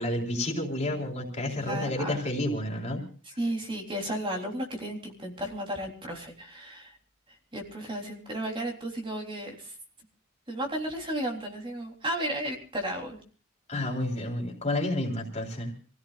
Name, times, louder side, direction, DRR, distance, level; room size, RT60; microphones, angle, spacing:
voice 1, 0.0-3.0 13.7-15.7, left 1 dB, 35° left, 0 dB, 4.0 m, -30 dB
voice 2, 1.5-2.3 3.2-7.0 7.3-9.8 10.5-13.2, right 1 dB, 25° right, 1 dB, 3.6 m, -34 dB
28.5 x 16.5 x 2.5 m, 0.40 s
head